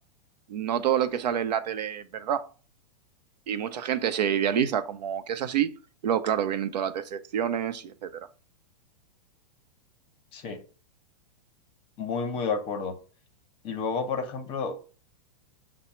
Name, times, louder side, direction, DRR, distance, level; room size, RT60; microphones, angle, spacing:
voice 1, 0.5-2.5 3.5-5.7 6.0-8.1, right 9 dB, 85° right, 0.7 m, -27 dB
voice 2, 10.3-10.6 12.0-12.9 13.6-14.7, left 5 dB, 25° left, 0.7 m, -30 dB
5.9 x 2.1 x 4.3 m
supercardioid pair, 160°, 21 cm